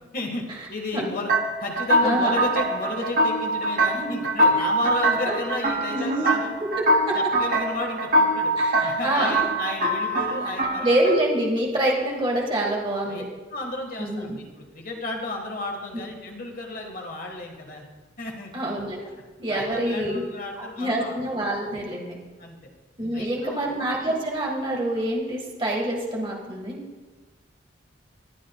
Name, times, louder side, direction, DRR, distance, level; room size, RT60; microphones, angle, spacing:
voice 1, 0.1-1.3 1.6-6.5 7.1-8.5 8.8-11.1 13.1-13.2 13.5-17.8 18.2-18.5 19.0-19.1 19.5-21.2 22.4-22.6 23.1-23.6, left 2 dB, 45° left, 2 dB, 1.6 m, -33 dB
sound 1, 1.3-11.2, right 1 dB, 45° right, 0.9 m, -23 dB
voice 2, 2.0-2.4 4.0-4.2 5.2-5.3 5.9-6.3 7.1-7.2 8.6-9.4 10.8-13.2 14.0-14.4 15.9-16.0 18.5-19.0 19.4-20.2 20.8-22.2 23.0-26.8, right 1 dB, 25° right, -2 dB, 1.6 m, -26 dB
19.0 x 10.0 x 2.3 m, 1.3 s
head